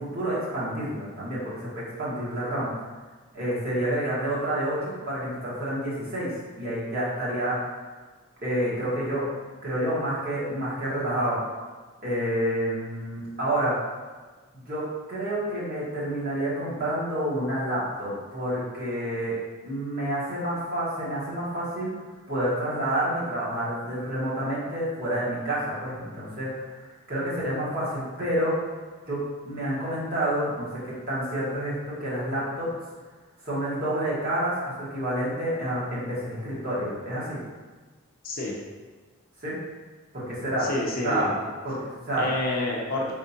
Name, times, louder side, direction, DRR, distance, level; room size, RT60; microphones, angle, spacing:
voice 1, 0.0-2.7 3.3-6.3 6.6-7.7 8.4-9.2 9.6-11.4 12.0-13.7 14.5-14.8 15.1-19.3 19.6-21.9 22.3-28.6 29.1-32.7 33.4-34.5 34.8-37.4 39.4-39.6 40.1-40.7 41.0-41.3 41.6-42.3, right 1 dB, 45° right, -8 dB, 1.4 m, -29 dB
voice 2, 38.2-38.6 40.6-41.4 42.2-43.1, left 2 dB, 40° left, -2 dB, 0.5 m, -28 dB
4.6 x 3.6 x 2.8 m, 1.3 s
head